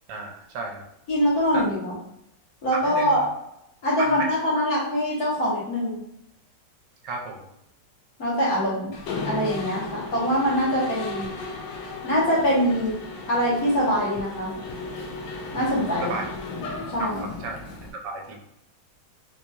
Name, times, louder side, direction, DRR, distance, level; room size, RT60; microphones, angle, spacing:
voice 1, 0.1-0.8 1.5-1.7 2.7-3.3 4.0-4.3 7.0-7.5 15.5-15.8 16.0-16.2 17.0-17.6 18.0-18.4, right 3 dB, 80° right, 2 dB, 1.2 m, -33 dB
voice 2, 1.1-1.9 2.6-3.3 3.8-6.0 8.2-8.9 9.2-11.3 12.0-12.9 13.3-14.5 15.5-16.1 16.9-17.2, equal, 60° left, -5 dB, 1.5 m, -23 dB
Mechanisms, 8.9-17.9, left 3 dB, 85° left, 1.3 m, -35 dB
4.0 x 2.9 x 2.3 m, 0.78 s
omnidirectional pair, 1.9 m